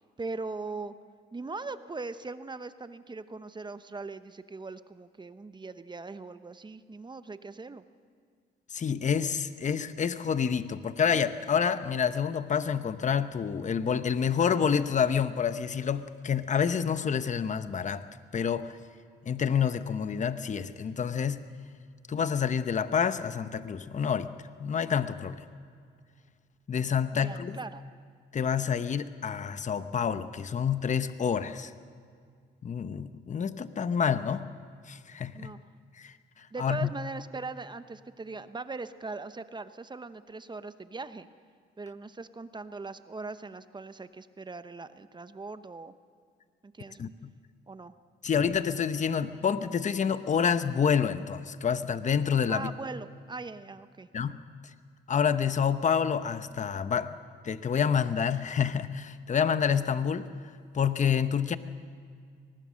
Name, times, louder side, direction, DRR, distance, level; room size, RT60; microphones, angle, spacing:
voice 1, 0.2-0.9 1.3-7.8 27.1-27.8 35.3-35.6 36.5-41.3 41.8-45.9 46.6-47.1 47.7-47.9 52.5-54.1, right 3 dB, 20° right, 12 dB, 0.9 m, -40 dB
voice 2, 8.7-18.0 18.3-18.8 19.2-21.4 22.1-24.3 24.6-25.4 26.7-27.6 28.3-31.7 32.6-34.4 34.9-35.5 36.0-36.9 47.0-47.1 48.2-52.7 54.1-54.4 55.1-57.1 57.4-60.3 60.7-61.6, left 7 dB, 40° left, 12 dB, 0.9 m, -28 dB
23.5 x 19.5 x 6.5 m, 2.1 s
cardioid pair, 90°, 20 cm